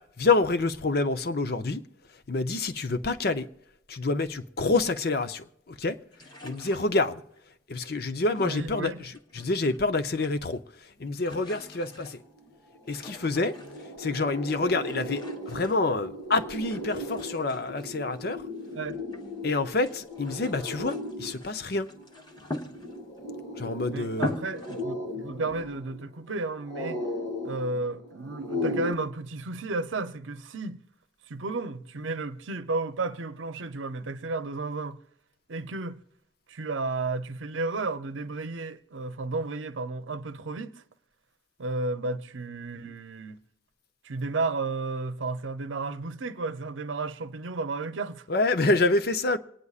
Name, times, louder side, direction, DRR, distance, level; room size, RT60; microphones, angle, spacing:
voice 1, 0.0-1.8 2.3-3.5 3.9-6.0 6.4-7.2 7.7-10.6 11.0-12.2 12.9-13.6 14.0-18.5 19.4-21.9 23.6-24.4 48.3-49.4, left 3 dB, 55° left, 0.6 m, -27 dB
sound 1, 6.1-7.4 8.3-9.8 10.1-10.7 11.0-14.1 14.7-16.3 16.7-19.3 19.7-23.3 23.7-23.8 24.1-24.9, left 1 dB, 25° left, 1.1 m, -42 dB
voice 2, 8.4-9.0 18.7-19.0 23.9-27.0 27.4-30.8 31.3-35.0 35.5-36.0 36.5-40.7 41.6-43.4 44.0-48.2, right 3 dB, 90° right, 0.7 m, -33 dB
sound 2, 12.4-12.5 12.7-28.9, left 1 dB, 80° left, 2.8 m, -37 dB
27.0 x 9.7 x 2.4 m
head